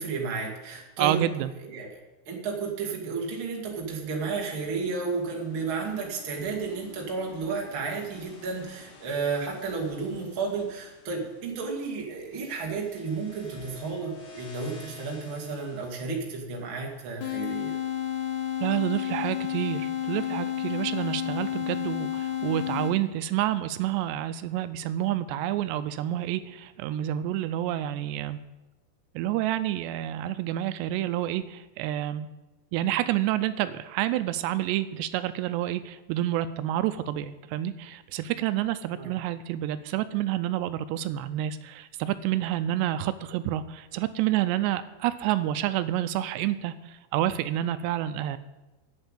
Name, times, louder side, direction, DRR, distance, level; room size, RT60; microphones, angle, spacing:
voice 1, 0.0-1.2 1.6-2.0 2.3-17.8 39.0-39.1, right 4 dB, 40° right, -1 dB, 2.0 m, -32 dB
voice 2, 1.0-1.5 18.6-28.4 29.2-32.3 32.7-48.4, right 13 dB, 85° right, 12 dB, 2.7 m, -29 dB
sound 1, 3.7-17.9, left 5 dB, 55° left, 4.4 m, -52 dB
sound 2, 17.2-23.2, left 11 dB, 90° left, 1.6 m, -31 dB
8.2 x 7.8 x 8.8 m, 1.0 s
omnidirectional pair, 4.9 m